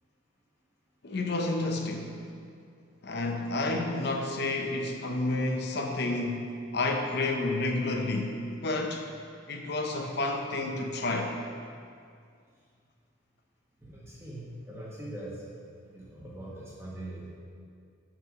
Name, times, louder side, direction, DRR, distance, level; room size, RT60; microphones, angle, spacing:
voice 1, 1.0-2.2 3.0-9.1 9.5-11.3, left 2 dB, 50° left, 3 dB, 0.6 m, -30 dB
voice 2, 13.8-15.4 15.9-17.4, right 1 dB, 10° right, -6 dB, 1.0 m, -42 dB
5.9 x 4.6 x 6.4 m, 2.3 s
head